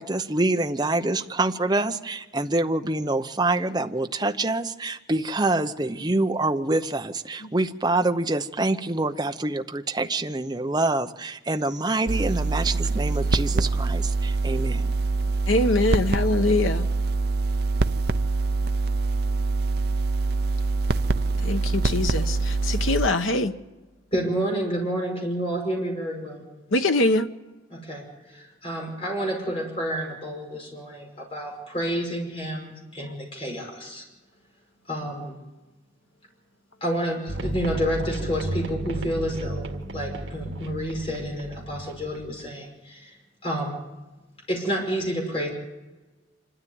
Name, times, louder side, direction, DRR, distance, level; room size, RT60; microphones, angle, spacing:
voice 1, 0.0-14.9, right 2 dB, 20° right, 0.7 m, -26 dB
sound 1, 12.1-23.1, right 3 dB, 55° right, 0.6 m, -24 dB
voice 2, 15.5-16.9 21.4-23.5 26.7-27.3, left 2 dB, 90° left, 1.0 m, -23 dB
voice 3, 24.1-26.4 27.7-34.0 34.9-35.4 36.8-43.2 43.4-43.8 44.5-45.5, equal, 30° left, 5.3 m, -29 dB
sound 2, 37.3-42.5, right 1 dB, 75° right, 1.9 m, -33 dB
26.0 x 13.0 x 9.4 m
head